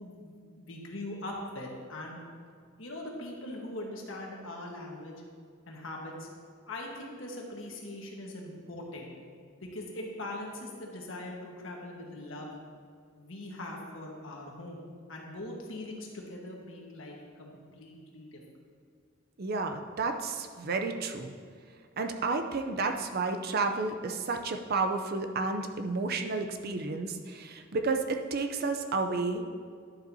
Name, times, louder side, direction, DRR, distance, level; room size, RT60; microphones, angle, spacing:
voice 1, 0.0-2.2 2.8-5.2 5.7-6.3 6.7-9.1 9.6-12.5 13.1-18.4, left 1 dB, 75° left, -1 dB, 1.4 m, -41 dB
voice 2, 19.4-21.3 22.0-29.4, right 3 dB, 50° right, 6 dB, 0.5 m, -31 dB
11.0 x 7.1 x 2.7 m, 2.1 s
head